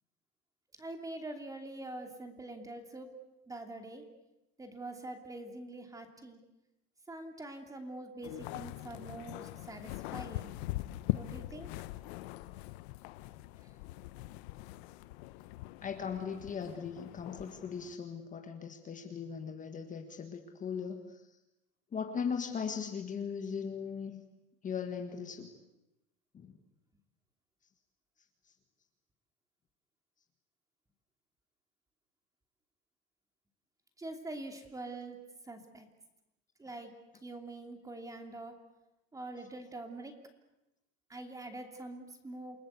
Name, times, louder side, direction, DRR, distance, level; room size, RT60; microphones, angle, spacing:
voice 1, 0.8-4.1 4.6-6.4 7.1-10.5 11.1-11.7 13.6-13.7 34.0-35.9 36.6-38.6 39.1-40.2 41.1-42.7, right 2 dB, 10° right, 5 dB, 2.8 m, -45 dB
sound 1, 8.2-18.0, left 17 dB, 75° left, 1.1 m, -42 dB
voice 2, 15.8-21.4 21.9-24.2 24.6-25.6 26.3-26.6 28.5-28.6, left 6 dB, 25° left, 5 dB, 1.8 m, -39 dB
28.5 x 19.5 x 8.2 m, 0.95 s
cardioid pair, 150°, 32 cm